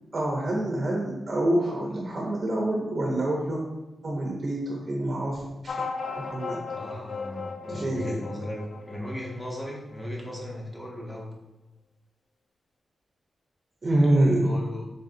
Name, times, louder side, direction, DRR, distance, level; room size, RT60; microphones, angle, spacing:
voice 1, 0.1-3.6 4.0-5.7 6.1-6.6 7.7-8.2 13.8-14.6, right 1 dB, 40° right, -2 dB, 0.6 m, -26 dB
sound 1, 5.7-10.6, left 4 dB, 60° left, 0.3 m, -37 dB
voice 2, 6.7-11.3 14.4-14.9, left 1 dB, 10° left, -3 dB, 0.9 m, -36 dB
3.8 x 3.8 x 2.6 m, 1.0 s
wide cardioid pair, 110°, 0 cm